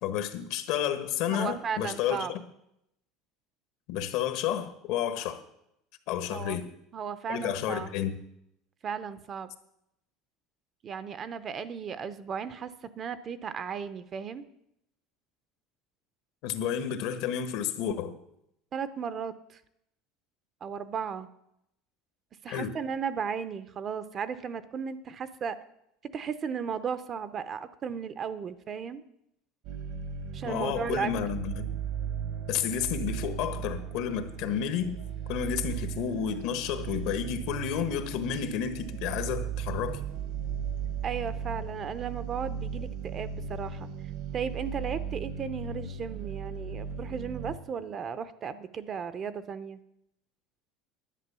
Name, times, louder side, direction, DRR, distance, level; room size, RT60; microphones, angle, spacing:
voice 1, 0.0-2.4 3.9-5.4 6.1-6.6 7.3-8.1 16.4-18.2 22.5-22.7 30.4-31.7 32.5-35.0 35.3-40.0, left 9 dB, 65° left, 1.2 m, -31 dB
voice 2, 1.3-2.3 6.3-6.6 6.9-7.9 8.8-9.5 10.8-14.5 18.7-19.6 20.6-21.3 22.4-25.6 26.1-29.0 30.3-31.1 41.0-43.9 44.3-49.8, right 7 dB, 35° right, 0.7 m, -35 dB
sound 1, 29.6-47.5, right 7 dB, 65° right, 1.4 m, -36 dB
11.0 x 8.1 x 6.8 m
supercardioid pair, 135°, 0 cm